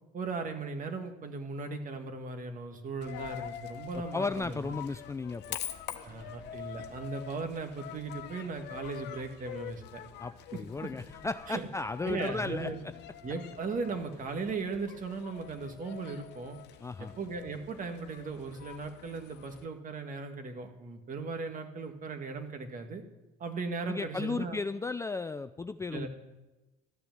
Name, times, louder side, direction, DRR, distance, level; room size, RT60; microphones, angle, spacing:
voice 1, 0.1-4.8 6.0-10.0 10.5-10.9 11.5-11.6 12.0-12.8 13.2-16.6 17.0-23.0 23.4-24.6 25.9-26.1, right 4 dB, 40° right, 6 dB, 1.9 m, -37 dB
Coin (dropping), 3.0-19.6, left 10 dB, 60° left, 1.1 m, -45 dB
voice 2, 4.1-5.6 10.2-12.7 16.8-17.1 23.9-26.1, left 3 dB, 15° left, 11 dB, 0.4 m, -35 dB
13.5 x 6.9 x 9.3 m, 1.1 s
supercardioid pair, 80°, 20 cm